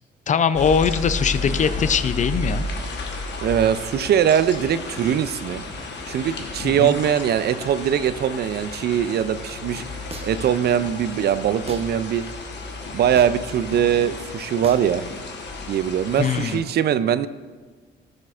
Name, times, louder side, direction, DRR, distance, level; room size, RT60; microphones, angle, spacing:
voice 1, 0.3-2.7 6.6-6.9 16.2-16.6, left 6 dB, 40° left, 13 dB, 0.4 m, -21 dB
sound 1, 0.5-16.6, left 3 dB, 60° left, 1.1 m, -32 dB
voice 2, 3.4-5.6 6.1-9.8 10.2-12.2 12.9-15.0 15.7-17.3, right 9 dB, 55° right, 14 dB, 0.4 m, -21 dB
sound 2, 10.1-10.5 11.7-11.9 13.1-13.5 14.6-14.9, right 3 dB, 30° right, 0.9 m, -38 dB
12.0 x 6.4 x 2.4 m, 1.4 s
cardioid pair, 90°, 20 cm